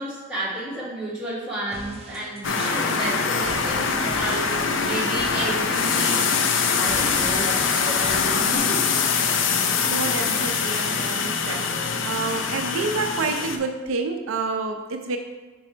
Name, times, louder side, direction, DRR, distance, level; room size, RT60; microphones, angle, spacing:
voice 1, 0.0-6.4 6.8-8.9 10.0-10.3, right 1 dB, 5° right, -9 dB, 1.7 m, -32 dB
sound 1, 1.7-8.6, right 1 dB, 30° right, 0.7 m, -40 dB
sound 2, 2.4-13.6, left 5 dB, 65° left, 0.5 m, -23 dB
voice 2, 9.4-15.2, right 4 dB, 80° right, 5 dB, 0.5 m, -29 dB
5.0 x 4.7 x 4.4 m, 1.2 s
head